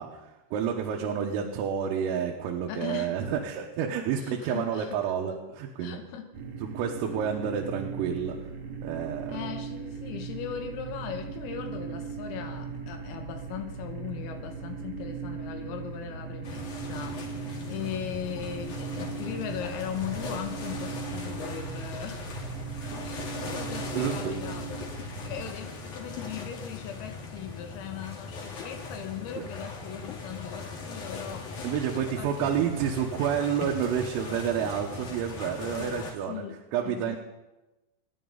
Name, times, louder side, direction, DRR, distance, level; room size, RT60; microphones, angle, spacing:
voice 1, 0.0-6.0 6.6-8.4 8.8-9.5 22.8-22.9 24.0-24.3 29.4-29.5 31.6-36.5 36.7-37.2, right 8 dB, 90° right, 0 dB, 3.8 m, -29 dB
voice 2, 2.7-3.2 4.2-5.1 5.8-6.3 9.3-22.5 23.0-24.7 25.3-31.5 32.0-32.9 35.7-36.0 36.3-37.2, left 9 dB, 85° left, 5 dB, 3.9 m, -39 dB
sound 1, 6.3-25.5, right 6 dB, 45° right, 2.2 m, -38 dB
sound 2, 16.4-36.1, left 4 dB, 50° left, 2.7 m, -39 dB
28.0 x 10.5 x 4.0 m, 1.0 s
omnidirectional pair, 5.9 m